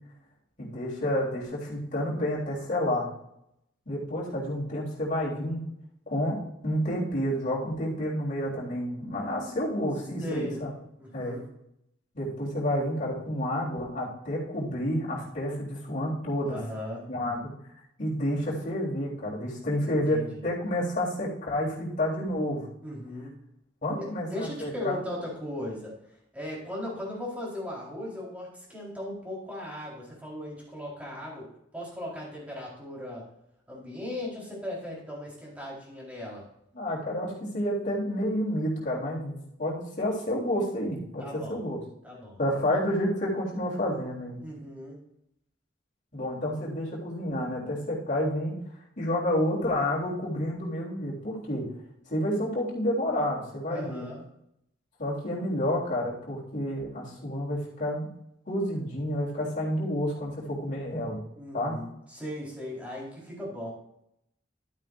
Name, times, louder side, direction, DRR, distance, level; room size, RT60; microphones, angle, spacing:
voice 1, 0.6-3.1 3.9-5.6 6.1-10.7 11.1-11.3 12.2-16.6 17.1-17.5 18.0-22.6 23.8-25.0 36.7-41.8 42.4-44.4 46.1-48.6 49.0-51.7 52.1-54.1 55.0-58.1 58.5-61.2 61.5-61.8, left 1 dB, 40° left, -5 dB, 3.7 m, -29 dB
voice 2, 10.2-10.6 11.0-11.4 16.5-17.1 19.9-20.4 22.8-23.3 24.0-25.9 26.3-31.5 31.7-33.2 33.7-36.4 41.2-41.6 42.0-42.4 44.4-45.0 53.7-54.2 61.4-63.7, left 1 dB, 10° right, -5 dB, 4.2 m, -37 dB
12.0 x 8.9 x 2.6 m, 0.78 s
head